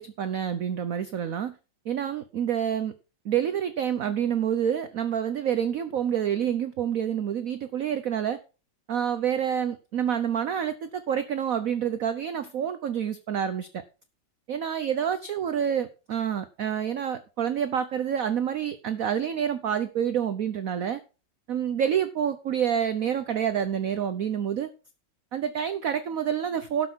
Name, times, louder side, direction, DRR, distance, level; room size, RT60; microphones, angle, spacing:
voice 1, 0.0-1.5 1.9-2.9 3.2-8.4 8.9-13.7 14.5-21.0 21.5-24.7 25.3-26.9, right 9 dB, 60° right, 11 dB, 1.0 m, -28 dB
12.0 x 5.8 x 6.2 m, 0.33 s
omnidirectional pair, 2.1 m